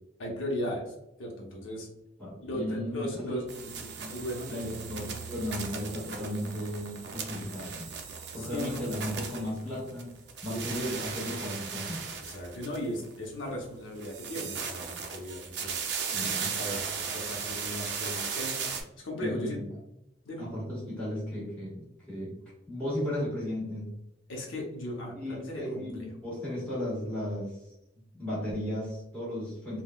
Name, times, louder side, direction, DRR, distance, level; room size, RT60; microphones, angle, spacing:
voice 1, 0.2-0.9 1.2-1.9 2.4-3.5 4.1-5.1 8.4-8.8 10.5-10.6 12.2-15.8 16.5-18.6 19.0-19.6 20.2-20.4 24.3-26.1, equal, 80° left, -1 dB, 0.8 m, -37 dB
voice 2, 2.2-7.9 8.3-10.1 10.4-12.1 16.1-16.6 19.2-19.6 20.4-23.9 25.1-27.6 28.1-29.8, left 1 dB, 5° left, -8 dB, 1.4 m, -35 dB
sound 1, 2.5-12.1 12.4-12.5 12.8-13.3, right 3 dB, 15° right, 1.1 m, -52 dB
sound 2, 3.5-10.0 10.3-13.1 14.0-18.8, right 6 dB, 55° right, 0.5 m, -37 dB
3.6 x 2.2 x 2.2 m, 0.86 s
head